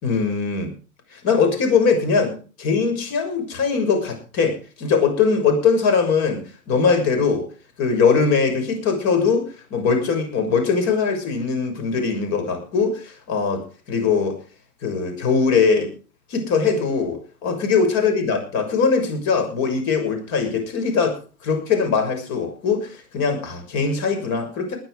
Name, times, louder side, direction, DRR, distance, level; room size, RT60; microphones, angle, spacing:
voice 1, 0.0-0.7 1.1-7.5 7.8-14.4 14.8-15.9 16.3-21.2 21.4-24.8, left 5 dB, 40° left, 6 dB, 6.5 m, -21 dB
19.5 x 11.0 x 5.0 m, 0.37 s
figure-of-eight pair, 100°, 44 cm